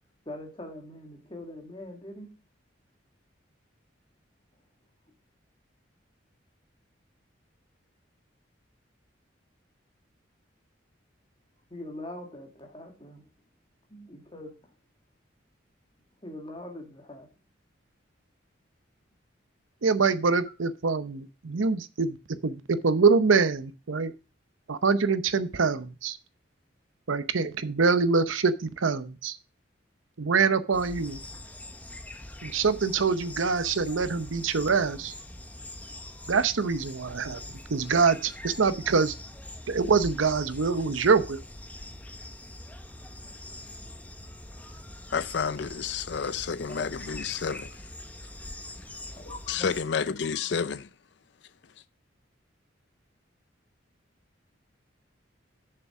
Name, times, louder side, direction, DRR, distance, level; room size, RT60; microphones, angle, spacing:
voice 1, 0.3-2.3 11.7-13.2 13.9-14.6 16.2-17.3 46.7-46.9 49.1-49.7, left 1 dB, 25° left, 2.1 m, -42 dB
voice 2, 19.8-22.2 22.4-24.1 24.7-26.2 27.1-29.4 30.2-31.2 32.4-35.1 36.3-39.1 39.7-41.4, right 4 dB, 85° right, 0.7 m, -25 dB
sound 1, 30.7-49.8, left 1 dB, 10° left, 0.7 m, -43 dB
voice 3, 45.1-47.7 49.5-50.9, left 6 dB, 60° left, 0.5 m, -30 dB
7.2 x 6.8 x 5.9 m
head